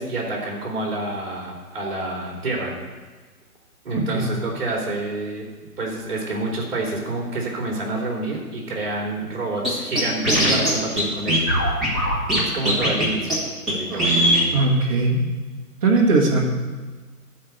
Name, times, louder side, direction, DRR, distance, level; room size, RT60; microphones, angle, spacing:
voice 1, 0.0-2.7 3.8-5.4 5.8-11.4 12.5-13.4 13.7-14.2, right 2 dB, 40° right, -1 dB, 3.1 m, -28 dB
Scratching (performance technique), 9.6-9.7 10.0-10.7 11.0-11.1 11.3-12.4 12.6-13.0 13.3-13.4 13.7-13.8 14.0-14.4, equal, ahead, 1.8 m, -19 dB
voice 2, 14.5-15.2 15.8-16.4, right 3 dB, 25° right, -4 dB, 1.4 m, -19 dB
12.5 x 4.5 x 7.9 m, 1.4 s
hypercardioid pair, 160°, 46 cm